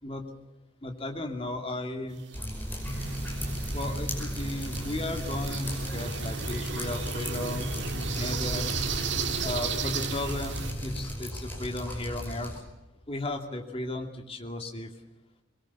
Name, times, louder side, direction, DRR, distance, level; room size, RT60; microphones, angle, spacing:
voice 1, 0.0-0.4 0.8-2.3 3.7-8.7 9.4-12.5 13.1-14.9, left 2 dB, 30° left, 3 dB, 2.6 m, -35 dB
sound 1, 2.2-10.7, right 6 dB, 70° right, 1.6 m, -36 dB
Drip, 2.3-12.6, equal, 10° left, 5.5 m, -37 dB
sound 2, 2.8-11.1, right 1 dB, 60° left, 4.4 m, -36 dB
23.5 x 22.0 x 7.1 m, 1.1 s
head